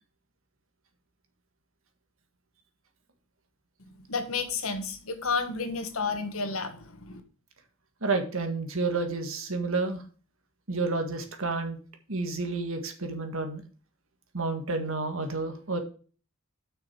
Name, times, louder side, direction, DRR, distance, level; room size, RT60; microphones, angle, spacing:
voice 1, 4.1-7.2, left 4 dB, 75° left, 8 dB, 1.5 m, -31 dB
voice 2, 8.0-10.0 10.7-11.8 12.1-13.6 14.3-15.8, right 3 dB, 70° right, 5 dB, 1.8 m, -30 dB
7.5 x 6.1 x 4.7 m, 0.38 s
head